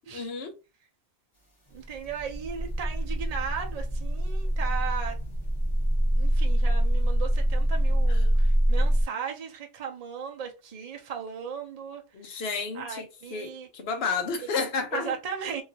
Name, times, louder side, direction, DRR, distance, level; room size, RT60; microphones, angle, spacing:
voice 1, 0.1-0.6 8.1-8.2 12.1-15.1, left 4 dB, 65° left, 0.9 m, -31 dB
sound 1, 1.7-9.0, right 1 dB, 25° left, 1.2 m, -25 dB
voice 2, 1.7-5.2 6.2-12.5 12.7-13.7 14.9-15.6, right 7 dB, 40° right, 0.7 m, -37 dB
2.9 x 2.7 x 2.8 m
omnidirectional pair, 1.1 m